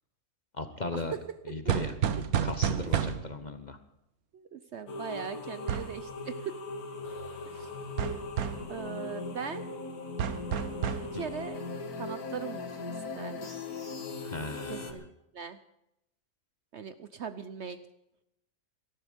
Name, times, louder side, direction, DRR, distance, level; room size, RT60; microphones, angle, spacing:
voice 1, 0.6-1.1 1.5-1.9 2.4-3.8 11.1-11.3 14.2-15.0, left 2 dB, 35° left, 9 dB, 0.9 m, -37 dB
sound 1, 1.7-3.5 5.7-6.0 8.0-8.7 10.2-11.1, right 8 dB, 75° right, 1.4 m, -30 dB
voice 2, 4.3-6.5 7.5-7.7 8.7-9.7 11.1-11.6 12.0-13.5 14.7-15.6 16.7-17.8, right 7 dB, 55° right, 11 dB, 0.9 m, -40 dB
sound 2, 4.9-14.9, left 3 dB, 75° left, 2.0 m, -39 dB
18.0 x 13.5 x 5.2 m, 0.85 s
omnidirectional pair, 1.6 m